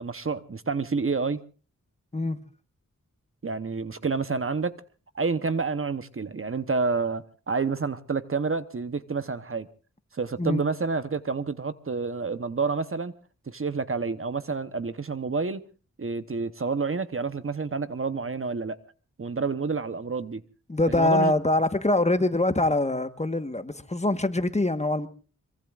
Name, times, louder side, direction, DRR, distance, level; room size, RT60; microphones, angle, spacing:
voice 1, 0.0-1.4 3.4-4.7 5.1-9.7 10.1-13.1 13.5-15.6 16.0-18.8 19.2-20.4 20.9-21.3, right 4 dB, 45° right, 0.9 m, -29 dB
voice 2, 20.7-25.1, left 2 dB, 20° left, 1.3 m, -24 dB
25.0 x 23.0 x 2.4 m
wide cardioid pair, 80°, 31 cm